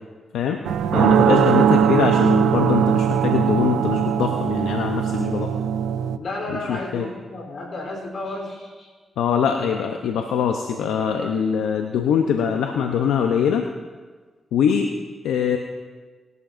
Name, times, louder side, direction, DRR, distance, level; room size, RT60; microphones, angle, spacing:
sound 1, 0.6-6.2, right 9 dB, 85° right, 0.4 m, -20 dB
voice 1, 0.9-5.5 6.5-7.1 9.2-13.7 14.5-14.9 15.2-15.6, left 7 dB, 90° left, 4 dB, 0.7 m, -22 dB
voice 2, 6.2-8.9, left 2 dB, 65° left, 2 dB, 3.7 m, -32 dB
20.0 x 12.0 x 2.6 m, 1.4 s
supercardioid pair, 45°, 0 cm